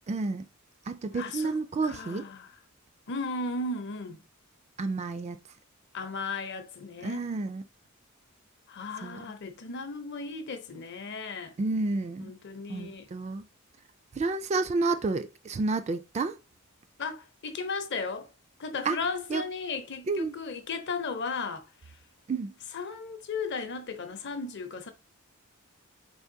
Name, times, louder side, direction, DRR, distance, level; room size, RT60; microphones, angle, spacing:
voice 1, 0.1-0.5 0.9-2.3 4.8-5.4 7.0-7.6 9.0-9.2 11.6-12.3 12.7-13.5 14.1-16.4 18.9-19.0 19.3-19.4 20.1-20.3 22.3-22.5, right 3 dB, 30° right, 0.3 m, -30 dB
voice 2, 1.1-1.6 1.8-2.5 3.1-4.2 5.9-7.3 8.7-11.6 12.2-13.1 17.0-18.3 18.6-22.0 22.7-24.9, left 4 dB, 55° left, 0.7 m, -35 dB
4.3 x 3.4 x 2.7 m
head